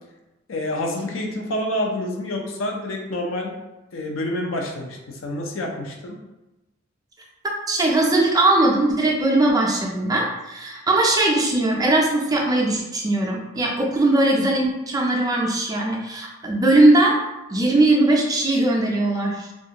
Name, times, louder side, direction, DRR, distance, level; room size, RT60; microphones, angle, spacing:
voice 1, 0.5-3.5 3.9-6.2, left 1 dB, 70° left, 1 dB, 0.5 m, -28 dB
voice 2, 7.7-17.2 17.5-19.5, right 2 dB, 20° right, -1 dB, 0.4 m, -19 dB
2.5 x 2.3 x 2.8 m, 1.0 s
head